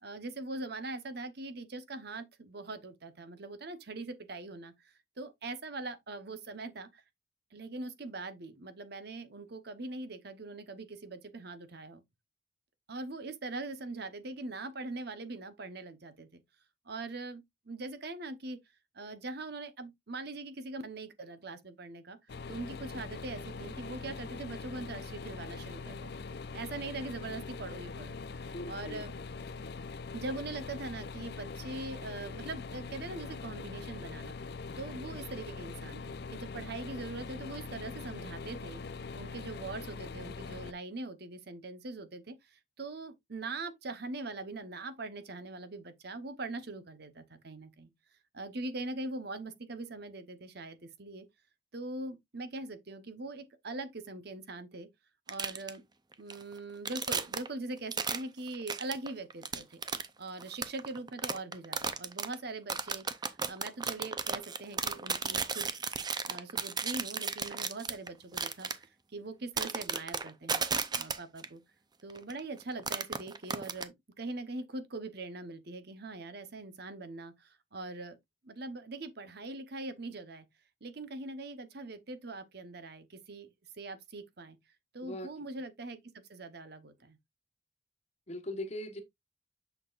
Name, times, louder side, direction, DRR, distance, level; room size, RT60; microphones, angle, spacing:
voice 1, 0.0-7.0 7.5-12.0 12.9-16.4 16.8-18.6 18.9-22.2 22.5-26.2 26.5-29.1 30.1-34.4 34.8-38.8 39.1-47.9 48.3-51.3 51.7-54.9 55.3-55.8 56.2-59.8 60.2-65.7 66.3-70.6 70.9-71.6 72.0-78.2 78.4-80.5 80.8-84.6 84.9-86.0 86.3-87.2, right 2 dB, 60° right, 1.0 m, -42 dB
sound 1, 22.3-40.7, left 4 dB, 60° left, 0.6 m, -42 dB
voice 2, 28.5-29.0 85.0-85.3 88.3-89.0, left 1 dB, 35° left, 1.2 m, -40 dB
sound 2, 55.3-55.8 56.1-56.5 56.9-57.5 57.9-58.2 58.5-60.1 60.4-62.3 62.7-68.8 69.6-71.5 72.1-72.4 72.7-73.8, right 5 dB, 25° right, 0.6 m, -34 dB
6.9 x 6.4 x 2.5 m
head